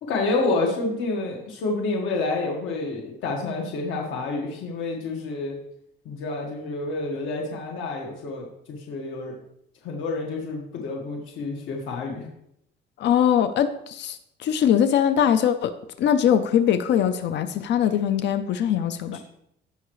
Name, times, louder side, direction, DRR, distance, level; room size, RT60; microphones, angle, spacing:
voice 1, 0.0-5.6 6.1-9.3 9.8-12.3 19.1-19.2, left 3 dB, 85° left, -1 dB, 1.7 m, -28 dB
voice 2, 13.0-19.2, left 9 dB, 70° left, 11 dB, 0.7 m, -22 dB
16.5 x 5.9 x 3.2 m, 0.77 s
cardioid pair, 140°, 19 cm